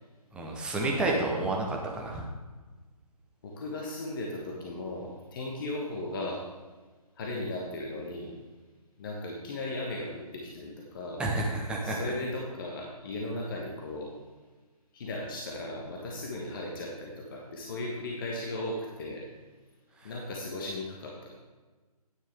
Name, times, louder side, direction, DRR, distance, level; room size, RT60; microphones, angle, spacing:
voice 1, 0.3-2.2 11.2-12.1 20.0-20.1, right 2 dB, 5° right, -1 dB, 0.8 m, -30 dB
voice 2, 3.4-6.5 7.2-8.3 9.0-11.2 11.8-14.1 14.9-19.2 20.0-21.4, left 2 dB, 35° left, -2 dB, 1.4 m, -36 dB
9.9 x 9.2 x 3.5 m, 1.3 s
figure-of-eight pair, 150°, 20 cm